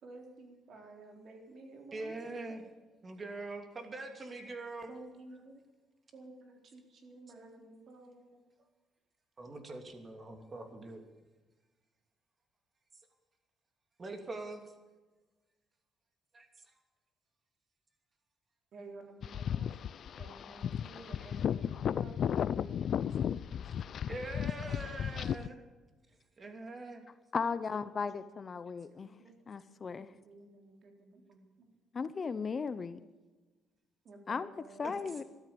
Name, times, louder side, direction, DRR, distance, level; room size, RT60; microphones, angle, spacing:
voice 1, 0.0-2.3 4.9-5.5 6.1-8.3 18.7-19.7 20.2-23.4 25.2-25.3 29.2-29.3 30.1-31.4 34.1-35.2, right 2 dB, 60° right, 2 dB, 3.7 m, -52 dB
voice 2, 1.9-2.6 3.0-4.9 9.4-11.0 14.0-14.6 16.3-16.5 21.2-21.3 21.6-21.8 24.1-25.6 26.4-27.0 34.8-35.0, right 2 dB, 35° right, 5 dB, 2.8 m, -43 dB
sound 1, 19.2-25.5, left 9 dB, 60° left, 0.4 m, -34 dB
voice 3, 27.3-29.1 29.5-30.1 31.9-33.0 34.3-35.2, left 5 dB, 35° left, 14 dB, 0.8 m, -36 dB
13.5 x 13.0 x 7.0 m, 1.2 s
cardioid pair, 95°, 0 cm